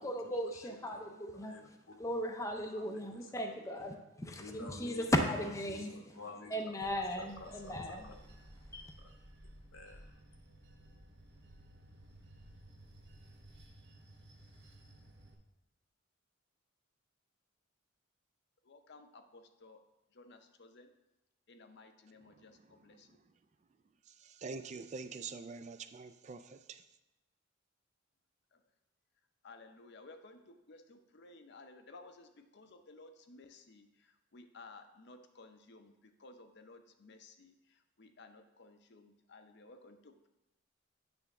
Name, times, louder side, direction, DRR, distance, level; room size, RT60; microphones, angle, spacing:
voice 1, 0.0-1.5 2.0-6.0 6.5-8.1 8.7-8.8, equal, 15° left, 3 dB, 0.5 m, -36 dB
voice 2, 0.5-1.0 1.3-1.9 2.7-3.6 4.4-5.0 5.4-6.5 7.2-8.1 9.7-10.0, left 3 dB, 90° left, 2 dB, 1.3 m, -51 dB
Bell / Train, 6.8-15.3, right 1 dB, 55° right, 0.9 m, -56 dB
voice 3, 18.6-19.8 20.1-20.9 21.5-23.1 28.5-28.6 29.4-40.3, left 3 dB, 55° left, 7 dB, 0.7 m, -56 dB
voice 4, 24.2-26.8, right 4 dB, 35° right, 11 dB, 0.3 m, -45 dB
8.9 x 3.4 x 5.8 m, 0.95 s
head